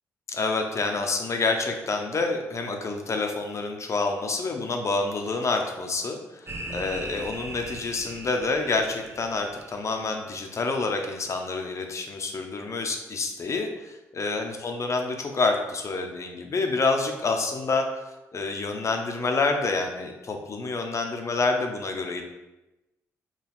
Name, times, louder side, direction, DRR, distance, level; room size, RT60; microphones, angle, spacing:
voice 1, 0.3-18.0 18.3-22.2, left 3 dB, 45° left, 4 dB, 0.7 m, -28 dB
sound 1, 6.5-10.3, right 1 dB, 35° right, 0.8 m, -39 dB
4.1 x 2.4 x 4.0 m, 0.99 s
hypercardioid pair, 45°, 7 cm